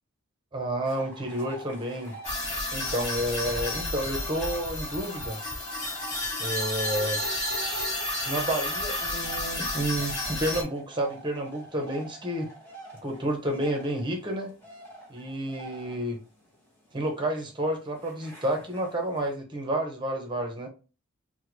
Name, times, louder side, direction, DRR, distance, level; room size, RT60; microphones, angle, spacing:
voice 1, 0.5-2.1 2.7-5.4 6.4-7.9 8.2-12.5 13.0-14.5 15.1-16.2 16.9-20.7, right 1 dB, 25° right, 0.9 m, -30 dB
sound 1, 0.8-19.3, right 2 dB, 10° left, 1.0 m, -47 dB
sound 2, 2.2-10.6, left 1 dB, 35° left, 1.5 m, -31 dB
3.7 x 2.2 x 3.0 m
head